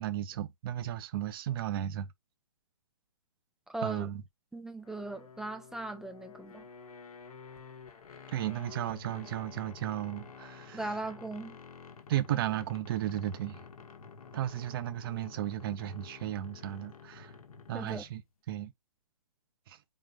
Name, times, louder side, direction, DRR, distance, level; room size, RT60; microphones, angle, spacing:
voice 1, 0.0-2.1 3.8-4.2 8.3-10.8 12.1-13.6 14.3-17.3 17.7-18.2 18.5-18.7 19.7-19.8, right 12 dB, 40° right, 0.7 m, -34 dB
voice 2, 3.7-4.1 4.5-6.7 10.7-11.6 17.7-18.0, right 2 dB, 5° right, 0.4 m, -38 dB
sound 1, 4.8-18.2, left 5 dB, 75° left, 1.0 m, -50 dB
4.6 x 3.7 x 2.4 m
hypercardioid pair, 140°, 19 cm